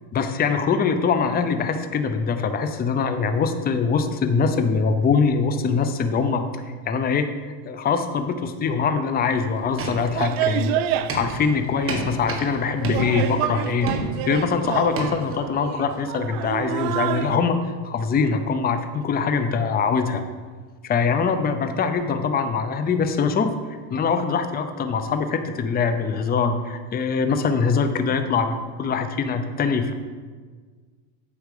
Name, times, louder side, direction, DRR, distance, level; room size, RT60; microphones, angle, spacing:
voice 1, 0.1-6.4 6.9-7.3 7.6-13.9 14.3-20.2 20.8-29.9, left 5 dB, 20° left, 8 dB, 0.6 m, -23 dB
sound 1, 9.5-17.4, right 11 dB, 70° right, 0.6 m, -29 dB
sound 2, 9.8-10.6 10.9-12.6 12.8-13.5 13.9-14.4 15.0-15.3, right 2 dB, 30° right, 1.6 m, -30 dB
8.3 x 4.8 x 6.6 m, 1.5 s
supercardioid pair, 120°, 47 cm